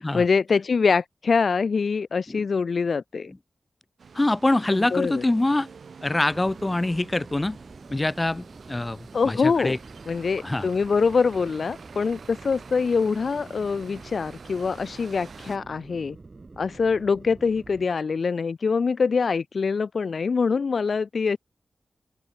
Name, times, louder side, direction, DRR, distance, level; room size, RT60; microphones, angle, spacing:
voice 1, 0.1-3.3 4.7-5.2 9.1-9.8 10.1-16.2 16.6-21.4, left 5 dB, 60° left, 0.3 m, -24 dB
sound 1, 4.0-15.6, right 5 dB, 70° right, 7.7 m, -47 dB
voice 2, 4.1-5.7 6.0-7.6 7.9-9.8 10.4-10.7, left 2 dB, 20° left, 0.8 m, -24 dB
sound 2, 6.3-17.9, right 3 dB, 35° right, 6.0 m, -47 dB
open air
wide cardioid pair, 120°, 0 cm